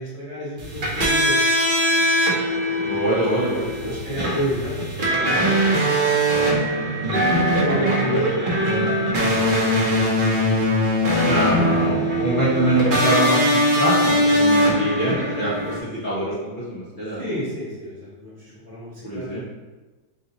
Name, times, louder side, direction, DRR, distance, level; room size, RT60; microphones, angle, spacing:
voice 1, 0.0-1.4 2.9-3.3 3.8-6.5 7.6-10.0 17.2-19.4, equal, 25° left, -9 dB, 0.9 m, -32 dB
sound 1, 0.6-15.8, equal, 70° right, 0.4 m, -21 dB
voice 2, 2.8-3.9 7.6-7.7 8.0-8.2 11.2-15.7 16.0-17.2 19.0-19.4, right 1 dB, 60° left, -9 dB, 0.5 m, -24 dB
3.3 x 2.8 x 3.9 m, 1.2 s
omnidirectional pair, 2.1 m